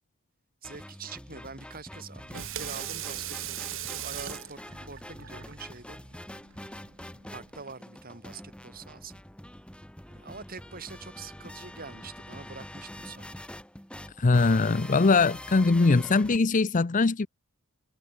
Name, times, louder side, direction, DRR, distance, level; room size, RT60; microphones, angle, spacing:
sound 1, 0.6-16.4, left 1 dB, 5° left, 2.6 m, -45 dB
voice 1, 0.6-6.0 7.3-9.2 10.1-13.5, right 4 dB, 40° right, 7.3 m, -45 dB
Water tap faucet / Sink (filling or washing), 2.1-7.6, right 11 dB, 60° right, 2.2 m, -40 dB
voice 2, 14.2-17.3, left 3 dB, 35° left, 0.6 m, -22 dB
head